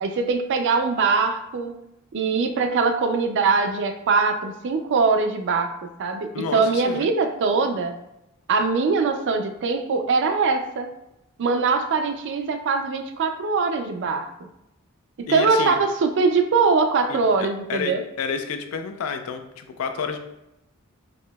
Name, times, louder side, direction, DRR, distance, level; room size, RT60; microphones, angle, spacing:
voice 1, 0.0-1.8 2.1-8.0 8.5-10.9 11.4-14.3 15.2-18.0, right 4 dB, 55° right, 7 dB, 0.4 m, -22 dB
voice 2, 6.3-7.1 15.3-15.8 17.1-20.2, left 5 dB, 80° left, 7 dB, 0.4 m, -30 dB
4.9 x 2.6 x 2.2 m, 0.87 s
head